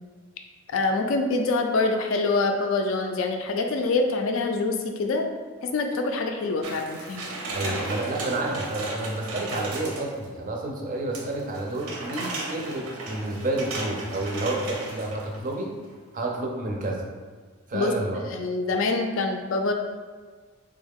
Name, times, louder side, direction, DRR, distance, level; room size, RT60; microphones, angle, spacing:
voice 1, 0.7-5.3 5.6-7.2 7.6-7.8 17.7-17.9 18.3-19.7, left 3 dB, 65° left, 4 dB, 0.4 m, -25 dB
sound 1, 6.6-10.3 11.1-15.5 15.9-16.0, right 2 dB, 80° right, 0.6 m, -35 dB
voice 2, 7.5-15.7 16.1-17.0 17.7-18.2, right 2 dB, 35° right, 0 dB, 0.4 m, -30 dB
3.5 x 2.3 x 3.5 m, 1.5 s
head